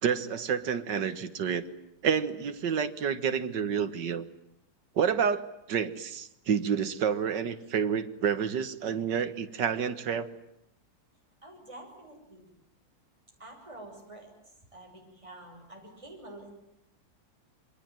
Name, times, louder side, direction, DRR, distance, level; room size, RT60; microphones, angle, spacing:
voice 1, 0.0-1.6 2.0-4.3 5.0-10.3, right 7 dB, 65° right, 11 dB, 2.0 m, -29 dB
voice 2, 11.4-12.5 13.4-16.6, right 1 dB, 15° right, 1 dB, 6.3 m, -48 dB
27.5 x 23.0 x 9.2 m, 0.77 s
omnidirectional pair, 2.1 m